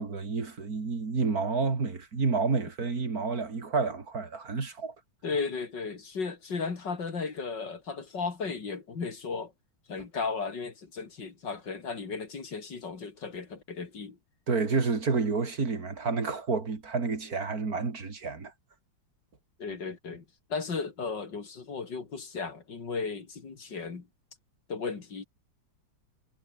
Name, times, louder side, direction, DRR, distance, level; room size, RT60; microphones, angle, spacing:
voice 1, 0.0-4.9 14.5-18.5, right 4 dB, 50° right, 3.2 m, -29 dB
voice 2, 5.2-9.5 9.9-14.2 19.6-20.2 20.5-24.1 24.7-25.2, left 5 dB, 65° left, 3.5 m, -35 dB
omnidirectional pair, 2.1 m